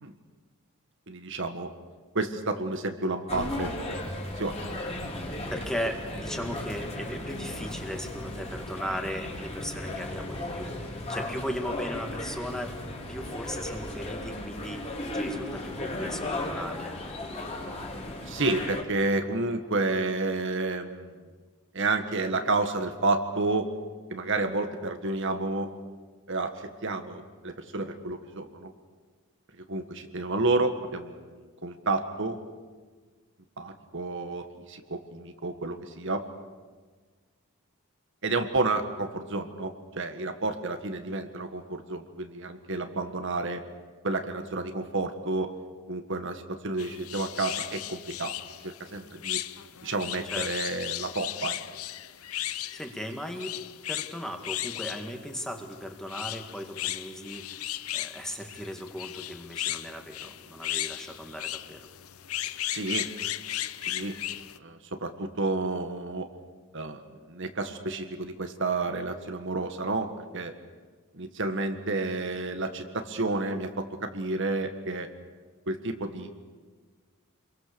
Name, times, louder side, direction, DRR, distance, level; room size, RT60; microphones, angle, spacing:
voice 1, 1.1-1.7 2.1-4.0 4.4-4.6 18.3-21.0 21.7-23.7 24.1-25.7 26.3-28.7 29.7-32.4 33.6-36.2 38.2-43.6 44.0-45.5 45.9-48.3 48.6-49.4 49.8-51.6 62.7-63.1 63.9-64.2 64.6-66.3 66.7-67.0 67.3-70.5 71.1-75.1 75.7-76.3, right 3 dB, 60° right, 7 dB, 1.6 m, -30 dB
sound 1, 3.3-18.8, left 1 dB, 30° left, 3.5 m, -36 dB
voice 2, 4.8-10.7 11.1-12.7 13.1-17.0 50.3-50.5 52.7-53.5 53.9-57.6 57.9-61.9, equal, 5° left, 4 dB, 2.0 m, -37 dB
sound 2, 46.8-64.6, left 13 dB, 80° left, 0.8 m, -36 dB
27.5 x 22.0 x 6.9 m, 1.5 s
head